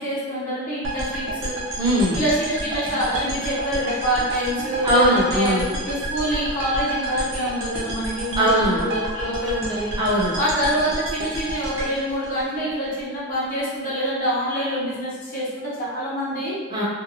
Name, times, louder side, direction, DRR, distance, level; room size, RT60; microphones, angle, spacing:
voice 1, 0.0-1.6 2.1-9.9 10.3-16.6, equal, 45° left, -9 dB, 0.8 m, -26 dB
sound 1, 0.8-13.0, right 1 dB, 80° right, 0.7 m, -30 dB
voice 2, 1.8-2.2 4.8-5.7 8.4-8.8 10.0-10.4 16.7-16.8, equal, 20° right, -7 dB, 0.7 m, -20 dB
2.6 x 2.2 x 2.9 m, 1.4 s
head